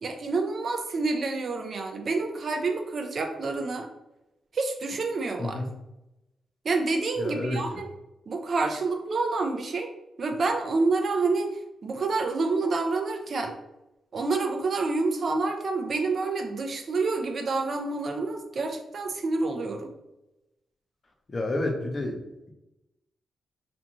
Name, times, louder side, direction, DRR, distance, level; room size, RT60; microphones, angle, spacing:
voice 1, 0.0-3.9 4.5-5.6 6.6-7.9 8.3-9.9 10.2-11.5 11.8-13.5 14.1-19.9, right 3 dB, 50° right, 4 dB, 0.4 m, -28 dB
voice 2, 7.2-7.6 21.3-22.2, left 2 dB, 35° left, 2 dB, 0.5 m, -29 dB
2.5 x 2.3 x 2.9 m, 0.94 s
cardioid pair, 100°, 0 cm